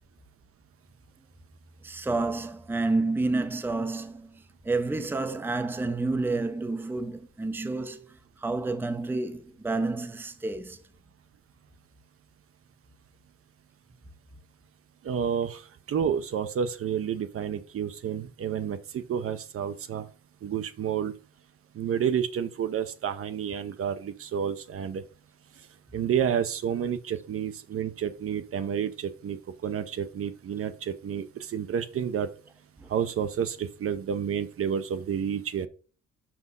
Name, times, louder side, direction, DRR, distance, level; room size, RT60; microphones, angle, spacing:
voice 1, 1.8-10.8 32.8-32.9, right 3 dB, 5° right, 0.6 m, -30 dB
voice 2, 15.0-15.6 15.9-20.1 20.4-21.1 21.7-25.0 25.9-29.4 29.6-32.3 32.9-35.7, right 8 dB, 50° right, 0.7 m, -30 dB
6.1 x 6.1 x 5.3 m
cardioid pair, 155°, 30 cm